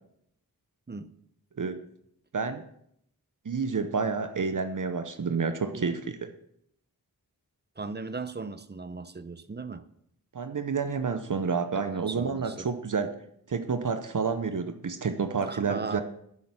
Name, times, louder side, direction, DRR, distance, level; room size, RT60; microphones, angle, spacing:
voice 1, 3.4-6.0 10.3-13.1 13.5-16.0, right 5 dB, 55° right, 9 dB, 0.8 m, -29 dB
voice 2, 7.8-9.9 11.7-12.7 15.5-16.0, right 4 dB, 30° right, 12 dB, 0.7 m, -38 dB
10.0 x 7.6 x 6.0 m, 0.73 s
wide cardioid pair, 70°, 37 cm